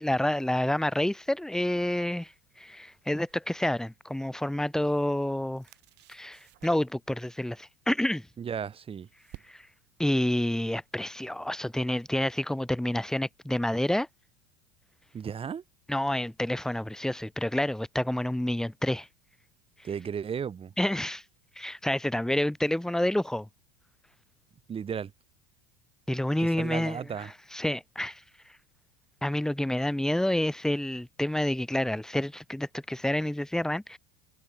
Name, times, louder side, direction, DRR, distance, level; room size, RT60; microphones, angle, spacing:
voice 1, 0.0-2.3 2.6-5.6 6.1-8.3 9.5-9.6 10.0-14.1 15.9-19.1 20.8-21.2 21.6-23.5 26.1-28.2 29.2-34.0, left 1 dB, ahead, 1.2 m, -28 dB
sound 1, 3.3-3.5 4.5-5.3 5.5-7.1 8.3-9.9, right 18 dB, 55° right, 2.2 m, -54 dB
voice 2, 8.4-9.1 15.1-15.6 19.8-20.7 24.7-25.1 26.4-27.3, right 7 dB, 25° right, 1.3 m, -34 dB
hypercardioid pair, 95°, 21 cm